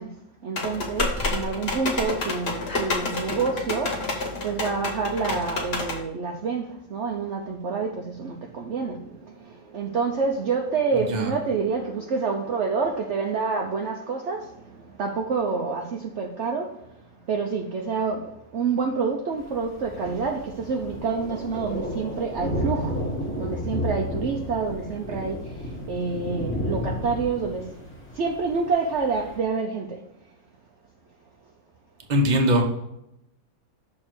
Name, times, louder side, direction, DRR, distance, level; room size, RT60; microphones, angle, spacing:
voice 1, 0.0-4.0 4.4-16.9 17.3-23.0 23.4-27.8 28.1-30.0, right 4 dB, 60° right, 0 dB, 0.9 m, -28 dB
sound 1, 0.6-6.0, left 2 dB, 45° left, 1.4 m, -29 dB
Thunder, 19.4-29.4, left 1 dB, 10° left, 1.0 m, -32 dB
voice 2, 32.1-32.6, equal, 35° right, 2 dB, 1.0 m, -20 dB
6.5 x 3.6 x 6.1 m, 0.82 s
omnidirectional pair, 1.5 m